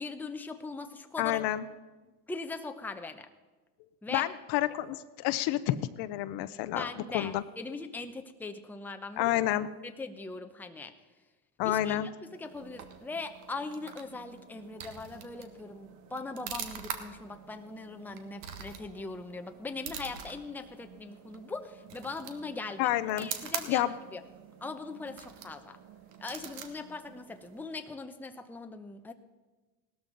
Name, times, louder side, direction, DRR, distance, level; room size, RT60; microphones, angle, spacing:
voice 1, 0.0-1.4 2.3-3.3 4.0-4.3 6.8-9.4 9.8-10.9 11.6-12.0 12.3-22.9 23.2-24.2 24.6-25.8 26.2-29.1, left 3 dB, 5° left, 7 dB, 0.7 m, -40 dB
voice 2, 1.2-1.6 4.1-6.9 7.1-7.4 9.2-9.7 11.6-12.1 22.8-23.3 23.7-23.9, left 14 dB, 60° left, 13 dB, 0.8 m, -29 dB
sound 1, 12.3-27.8, right 8 dB, 75° right, 1.5 m, -45 dB
17.0 x 13.0 x 3.9 m, 1.3 s
supercardioid pair, 110°, 46 cm